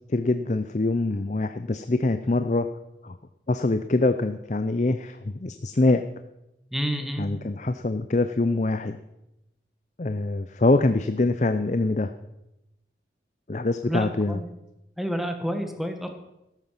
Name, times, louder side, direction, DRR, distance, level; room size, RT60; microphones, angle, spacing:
voice 1, 0.1-2.7 3.0-3.2 3.5-6.1 7.2-9.0 10.0-12.1 13.5-14.4, left 2 dB, 40° left, 9 dB, 0.6 m, -24 dB
voice 2, 6.7-7.3 13.9-14.4 15.0-16.1, equal, ahead, 5 dB, 1.6 m, -29 dB
15.0 x 12.5 x 5.8 m, 0.90 s
head